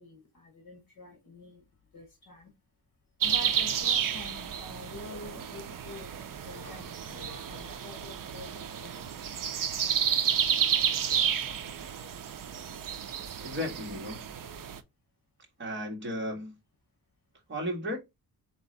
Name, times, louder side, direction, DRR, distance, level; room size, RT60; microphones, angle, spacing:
voice 1, 0.0-1.6 1.9-2.5 3.2-9.2 9.8-12.2 12.6-12.8 13.1-13.5 14.4-14.7, left 3 dB, 60° left, 1.3 m, -48 dB
sound 1, 3.2-14.8, right 8 dB, 60° right, 0.6 m, -31 dB
voice 2, 13.4-14.3 15.6-16.6 17.5-18.0, equal, 30° right, 1.6 m, -34 dB
4.3 x 3.0 x 3.8 m
wide cardioid pair, 170°, 37 cm